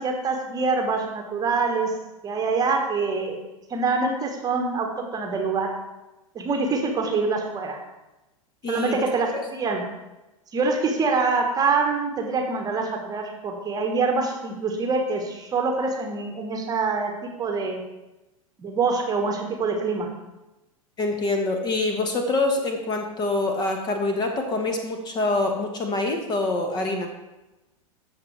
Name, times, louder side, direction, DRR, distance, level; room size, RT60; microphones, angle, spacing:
voice 1, 0.0-1.9 2.2-3.4 3.7-5.7 6.3-7.8 8.7-9.8 10.5-17.8 18.6-20.1, right 4 dB, 20° right, 3 dB, 1.3 m, -25 dB
voice 2, 8.6-9.0 9.3-9.4 21.0-27.1, left 2 dB, 25° left, 4 dB, 1.2 m, -25 dB
14.5 x 5.9 x 3.3 m, 1.0 s
figure-of-eight pair, 95°, 18 cm